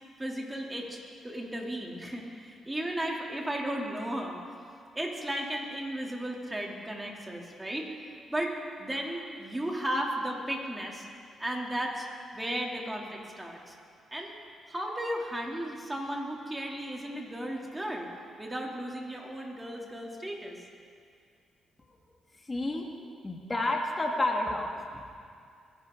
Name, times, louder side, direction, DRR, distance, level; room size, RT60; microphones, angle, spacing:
voice 1, 0.2-4.4 4.9-11.1 11.4-12.1 12.3-13.7 14.1-14.4 14.7-18.1 18.4-20.6, right 1 dB, 15° right, -1 dB, 3.1 m, -35 dB
voice 2, 22.3-22.9 23.2-25.1, left 2 dB, 25° left, 0 dB, 2.0 m, -30 dB
21.5 x 11.0 x 3.9 m, 2.3 s
supercardioid pair, 55°, 0 cm